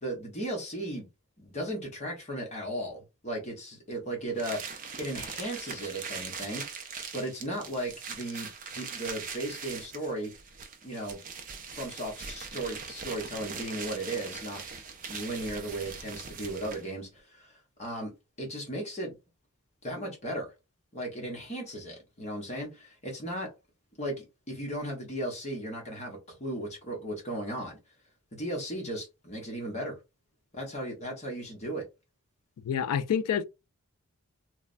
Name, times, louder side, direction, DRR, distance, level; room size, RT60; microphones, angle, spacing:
voice 1, 0.0-1.1 1.4-8.5 8.7-10.3 10.8-11.2 11.7-14.6 15.1-18.1 18.4-19.2 19.8-20.5 20.9-23.5 24.0-27.8 28.3-30.0 30.5-31.8, right 1 dB, 30° left, 0.9 m, -36 dB
sound 1, 4.4-16.9, right 5 dB, 35° right, 0.4 m, -41 dB
voice 2, 32.6-33.5, left 8 dB, 85° left, 0.3 m, -27 dB
3.1 x 2.0 x 2.4 m
head